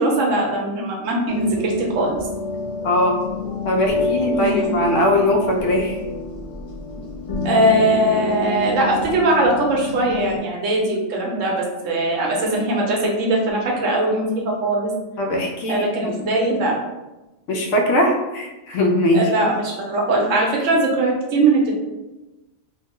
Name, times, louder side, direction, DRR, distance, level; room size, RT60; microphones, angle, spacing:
voice 1, 0.0-2.1 4.3-4.7 7.4-14.9 15.7-16.7 19.1-21.7, right 2 dB, 85° right, -1 dB, 1.1 m, -20 dB
sound 1, 1.3-10.4, left 2 dB, 55° left, 0.3 m, -27 dB
voice 2, 2.8-3.2 3.6-6.0 15.2-15.9 17.5-19.3, left 1 dB, 80° left, 1 dB, 1.0 m, -20 dB
3.0 x 2.0 x 3.5 m, 1.1 s
omnidirectional pair, 1.3 m